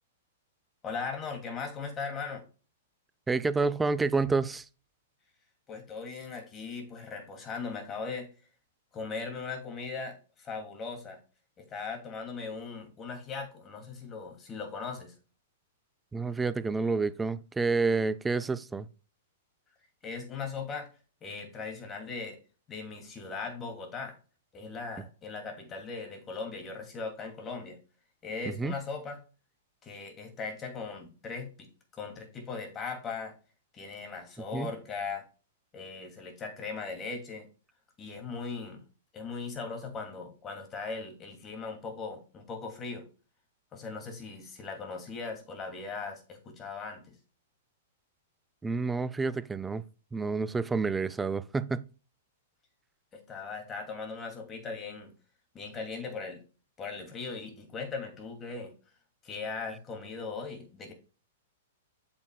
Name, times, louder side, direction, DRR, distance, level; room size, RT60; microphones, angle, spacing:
voice 1, 0.8-2.4 5.7-8.3 8.9-11.2 11.6-15.1 20.0-20.9 21.2-22.4 22.7-24.2 24.5-27.8 28.2-29.2 29.8-31.7 31.9-33.3 33.7-35.2 35.7-37.5 38.0-38.8 39.1-43.0 43.7-47.2 53.1-55.1 55.5-56.4 56.8-58.7 59.2-60.9, left 4 dB, 25° left, 2.5 m, -39 dB
voice 2, 3.3-4.6 16.1-18.9 28.5-28.8 34.5-34.7 48.6-49.8 50.1-51.8, right 4 dB, 10° right, 0.4 m, -29 dB
8.4 x 6.4 x 2.3 m
hypercardioid pair, 115°, 0 cm